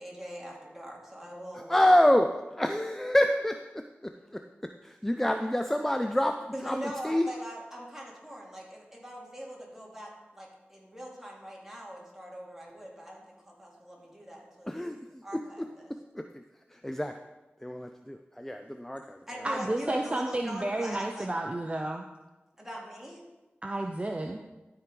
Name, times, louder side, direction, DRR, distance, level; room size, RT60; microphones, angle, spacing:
voice 1, 0.0-2.1 6.5-15.9 19.3-21.3 22.6-23.2, equal, 10° right, -3 dB, 2.7 m, -42 dB
voice 2, 1.7-2.3 2.5-4.4 4.8-6.8 7.0-7.3 14.7-15.7 16.2-16.4 16.7-17.2 17.6-19.2, left 1 dB, 10° left, 6 dB, 0.5 m, -27 dB
voice 3, 19.4-22.0 23.6-24.5, right 1 dB, 30° right, 2 dB, 0.7 m, -31 dB
12.5 x 4.8 x 5.2 m, 1.1 s
wide cardioid pair, 55°, 4 cm